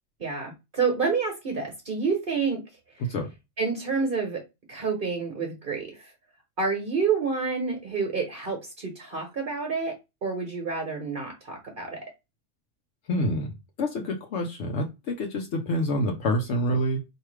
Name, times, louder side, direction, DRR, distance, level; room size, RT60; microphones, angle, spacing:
voice 1, 0.2-2.6 3.6-4.4 4.7-6.1 6.6-9.9 10.2-12.0, right 5 dB, 50° right, 2 dB, 1.1 m, -28 dB
voice 2, 13.1-17.0, left 1 dB, 70° left, 2 dB, 1.0 m, -27 dB
4.6 x 2.8 x 3.1 m, 0.24 s
omnidirectional pair, 1.3 m